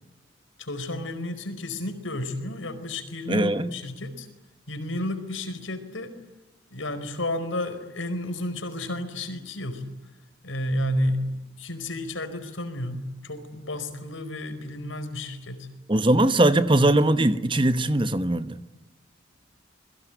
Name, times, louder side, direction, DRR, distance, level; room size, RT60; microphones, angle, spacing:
voice 1, 0.6-4.3 4.7-6.1 6.7-9.8 10.4-11.3 11.6-15.7, left 1 dB, 85° left, 4.7 m, -31 dB
voice 2, 3.3-3.7 15.9-18.6, right 1 dB, 25° right, 1.1 m, -21 dB
29.0 x 22.5 x 9.2 m
head